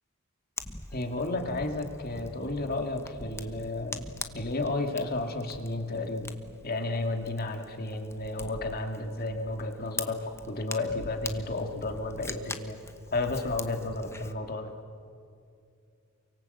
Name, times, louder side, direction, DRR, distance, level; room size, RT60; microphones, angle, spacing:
Fire, 0.6-14.3, left 2 dB, 15° left, 1.1 m, -43 dB
voice 1, 0.9-4.1 4.3-6.4 6.6-10.2 10.5-12.8 13.1-14.7, left 2 dB, 45° left, 5 dB, 2.3 m, -32 dB
28.5 x 24.0 x 8.0 m, 2.5 s
head